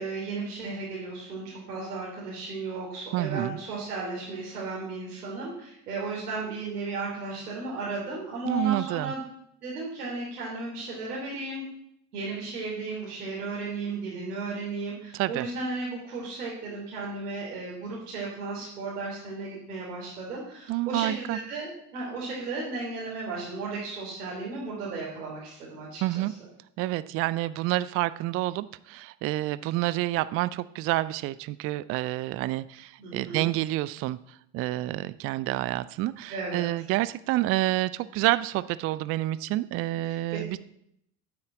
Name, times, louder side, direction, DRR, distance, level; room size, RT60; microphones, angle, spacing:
voice 1, 0.0-9.2 9.6-11.7 12.1-26.2 33.0-33.5 36.3-36.7 40.0-40.4, right 3 dB, 70° right, -4 dB, 3.3 m, -35 dB
voice 2, 3.1-3.6 8.4-9.1 15.1-15.5 20.7-21.4 26.0-26.3 26.8-40.6, right 16 dB, 30° right, 17 dB, 0.4 m, -28 dB
9.6 x 8.4 x 7.8 m, 0.73 s
figure-of-eight pair, 65°, 48 cm